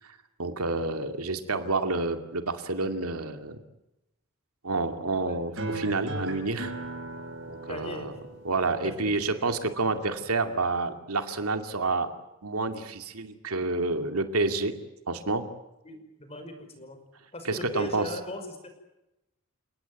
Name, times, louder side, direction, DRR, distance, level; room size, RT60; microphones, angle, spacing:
voice 1, 0.4-3.6 4.6-6.7 7.5-8.1 8.4-12.1 12.4-14.7 15.1-15.4 17.4-18.1, right 3 dB, 85° right, 6 dB, 2.4 m, -29 dB
sound 1, 5.6-10.6, right 2 dB, 60° right, 4.8 m, -38 dB
voice 2, 7.7-8.1 8.8-8.9 15.8-17.0 17.3-18.7, left 1 dB, 30° left, 7 dB, 5.5 m, -38 dB
29.5 x 18.5 x 9.4 m, 0.93 s
head